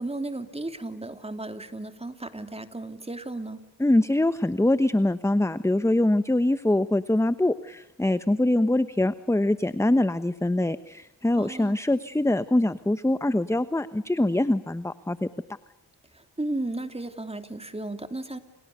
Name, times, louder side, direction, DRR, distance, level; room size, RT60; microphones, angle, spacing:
voice 1, 0.0-3.7 11.4-11.8 16.4-18.4, right 2 dB, 15° right, 8 dB, 3.2 m, -34 dB
voice 2, 3.8-15.3, left 1 dB, 5° left, 13 dB, 1.1 m, -23 dB
29.5 x 29.0 x 6.9 m, 0.84 s
cardioid pair, 75°, 45 cm